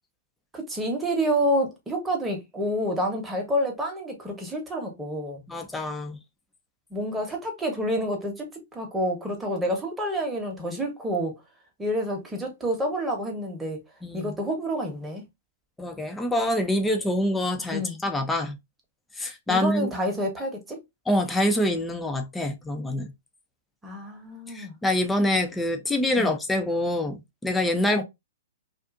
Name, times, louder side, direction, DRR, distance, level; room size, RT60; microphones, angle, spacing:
voice 1, 0.5-5.4 6.9-8.5 8.7-11.4 11.8-13.8 14.1-15.2 17.7-18.0 19.5-20.8 23.8-24.8 26.2-26.4 27.9-28.0, equal, 10° right, 1.0 m, -28 dB
voice 2, 5.5-6.2 14.0-14.4 15.8-18.6 19.2-19.9 21.1-23.1 24.5-28.0, left 1 dB, 10° left, 0.6 m, -26 dB
2.5 x 2.5 x 2.4 m
hypercardioid pair, 125°, 0 cm